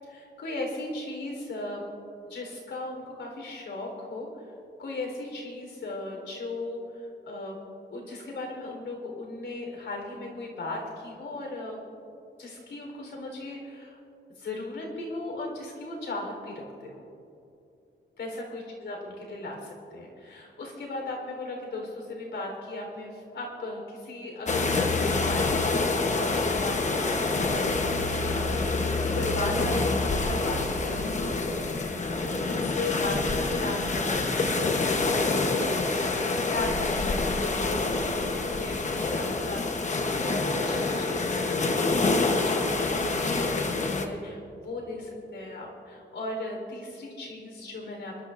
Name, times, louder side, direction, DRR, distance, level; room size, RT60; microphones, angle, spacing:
voice 1, 0.1-1.9 2.3-4.5 4.8-7.6 7.9-11.8 12.4-14.0 14.3-17.0 18.2-27.3 27.7-31.4 32.5-48.2, left 2 dB, 80° left, 0 dB, 3.9 m, -37 dB
sound 1, 24.5-44.1, left 3 dB, 40° left, 1.0 m, -27 dB
27.5 x 12.5 x 2.6 m, 2.7 s
wide cardioid pair, 170°, 19 cm